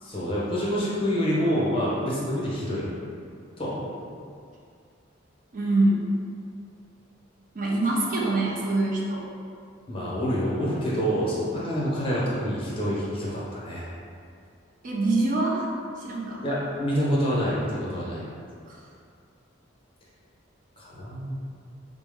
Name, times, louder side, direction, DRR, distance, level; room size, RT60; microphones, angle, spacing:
voice 1, 0.0-2.9 3.6-3.9 9.9-13.9 16.4-18.2 20.8-21.4, equal, 25° left, -7 dB, 0.8 m, -27 dB
voice 2, 5.5-6.0 7.5-9.3 11.6-11.7 14.8-15.7 16.0-16.4 18.7-18.9, right 2 dB, 45° right, -3 dB, 0.4 m, -25 dB
4.2 x 2.0 x 3.4 m, 2.3 s
head